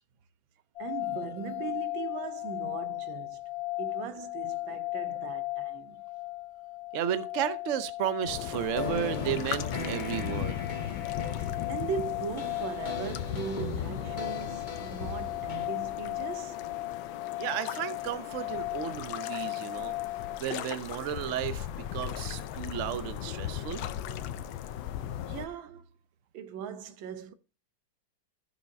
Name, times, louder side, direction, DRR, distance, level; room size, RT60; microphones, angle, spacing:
sound 1, 0.8-20.4, left 19 dB, 65° left, 1.0 m, -37 dB
voice 1, 0.8-3.4 3.8-6.0 11.4-16.6 25.2-25.9 26.3-27.3, right 7 dB, 90° right, 1.6 m, -39 dB
voice 2, 6.9-10.6 17.4-20.0 20.4-21.7 21.9-23.8, right 10 dB, 65° right, 0.8 m, -33 dB
sound 2, 8.2-15.7, left 2 dB, 35° left, 0.9 m, -39 dB
sound 3, 8.3-25.5, left 11 dB, 85° left, 1.4 m, -38 dB
14.0 x 6.3 x 2.6 m
omnidirectional pair, 2.1 m